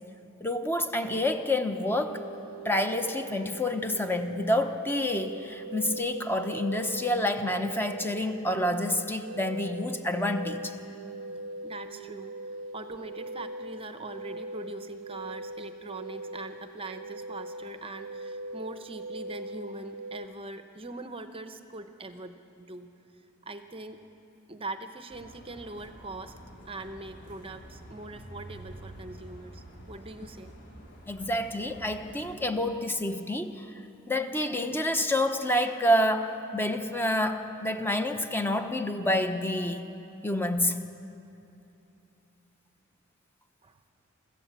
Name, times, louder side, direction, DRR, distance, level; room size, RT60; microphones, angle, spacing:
voice 1, 0.4-2.2 2.6-10.8 31.1-33.7 34.1-39.9 40.2-40.8, left 1 dB, 10° left, 7 dB, 0.9 m, -28 dB
sound 1, 1.9-20.2, right 1 dB, 70° right, 0.6 m, -41 dB
voice 2, 11.6-12.3 12.7-22.9 23.4-24.0 24.5-26.4 26.7-30.6 43.6-43.8, right 2 dB, 25° right, 8 dB, 0.8 m, -42 dB
sound 2, 25.1-32.4, right 1 dB, 55° left, 3.6 m, -48 dB
24.5 x 15.0 x 7.4 m, 2.8 s
head